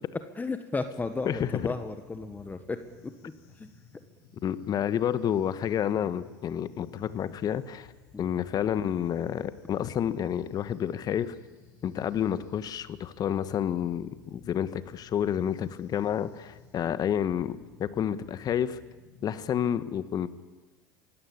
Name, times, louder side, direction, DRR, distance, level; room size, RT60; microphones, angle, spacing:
voice 1, 0.4-2.8 3.0-3.3 3.6-3.7 8.1-8.2, left 3 dB, 15° left, 9 dB, 1.4 m, -34 dB
sound 1, 1.0-19.6, left 6 dB, 60° left, 7.2 m, -56 dB
voice 2, 4.4-7.9 8.2-11.3 11.8-18.8 19.2-20.3, left 9 dB, 40° left, 14 dB, 1.4 m, -29 dB
24.0 x 16.5 x 8.8 m, 1.2 s
hypercardioid pair, 80°, 10 cm